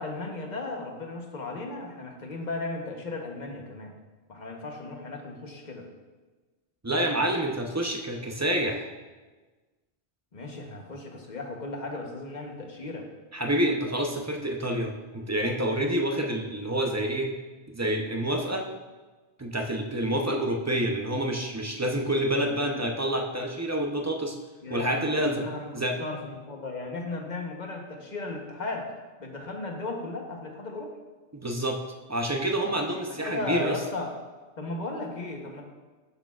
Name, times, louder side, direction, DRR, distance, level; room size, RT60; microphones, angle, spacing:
voice 1, 0.0-3.9 4.3-5.9 10.3-13.1 22.6-22.8 24.6-28.9 29.2-31.0 32.8-34.1 34.6-35.6, left 2 dB, 45° left, 2 dB, 1.1 m, -36 dB
voice 2, 6.8-8.9 13.3-17.4 17.7-18.7 19.4-24.4 24.7-25.4 25.7-26.0 31.3-31.8 32.1-33.8, right 1 dB, 20° right, 2 dB, 0.6 m, -28 dB
12.0 x 6.5 x 2.4 m, 1.3 s
omnidirectional pair, 1.1 m